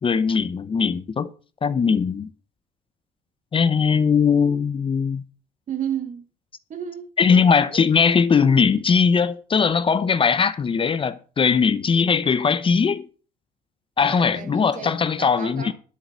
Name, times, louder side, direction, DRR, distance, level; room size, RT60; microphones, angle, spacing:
voice 1, 0.0-1.3 1.6-2.3 3.5-5.2 7.2-13.1 14.0-15.7, left 6 dB, 30° left, 0.8 m, -20 dB
voice 2, 5.7-6.2 6.7-7.9 14.0-15.7, right 9 dB, 45° right, 2.0 m, -33 dB
11.0 x 6.4 x 7.4 m
cardioid pair, 110°, 17 cm